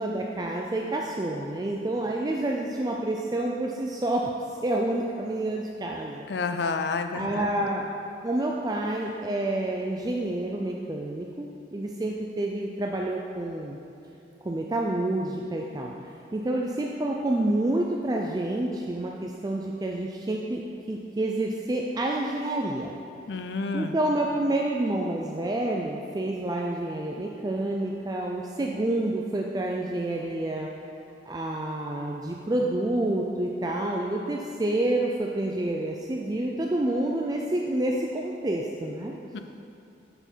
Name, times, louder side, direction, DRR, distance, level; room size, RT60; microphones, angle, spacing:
voice 1, 0.0-4.3 4.6-6.2 7.1-7.9 8.2-13.8 14.4-15.9 16.3-20.6 20.9-22.9 23.7-30.7 31.3-39.1, right 1 dB, 20° right, -1 dB, 0.4 m, -28 dB
voice 2, 6.3-7.5 23.3-24.0 39.3-39.4, left 4 dB, 70° left, 8 dB, 0.5 m, -29 dB
7.9 x 7.0 x 4.5 m, 2.6 s
head